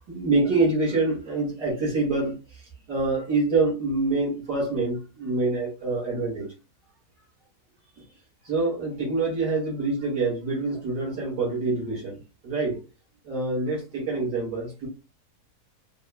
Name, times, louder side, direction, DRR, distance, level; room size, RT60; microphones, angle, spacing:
voice 1, 0.1-2.3 2.9-6.5 8.4-12.2 12.4-12.8 13.3-14.9, right 3 dB, 80° right, 2.8 m, -26 dB
5.3 x 2.1 x 2.4 m
omnidirectional pair, 1.7 m